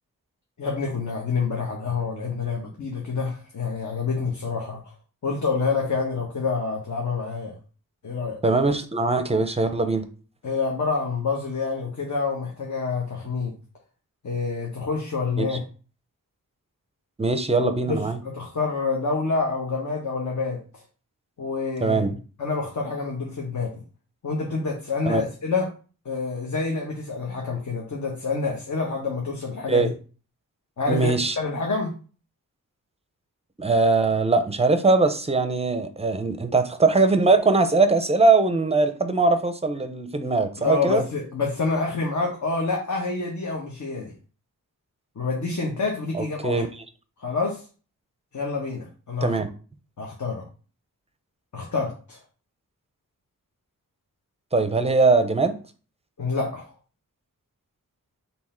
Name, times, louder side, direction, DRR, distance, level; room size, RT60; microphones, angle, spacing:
voice 1, 0.6-4.8 5.2-7.6 8.0-8.4 10.4-13.5 14.2-15.6 17.6-20.8 21.4-23.8 24.2-25.7 26.0-29.9 30.8-31.9 40.6-44.1 45.2-46.6 47.2-47.6 48.3-49.4 50.0-50.5 51.5-52.2 56.2-56.7, left 4 dB, 55° left, -1 dB, 1.0 m, -27 dB
voice 2, 8.4-10.1 15.4-15.6 17.2-18.2 21.8-22.1 25.1-25.2 29.7-29.9 30.9-31.4 33.6-41.0 46.1-46.7 49.2-49.5 54.5-55.6, right 3 dB, 20° right, 9 dB, 0.5 m, -21 dB
3.6 x 2.7 x 4.3 m, 0.37 s
wide cardioid pair, 80°, 34 cm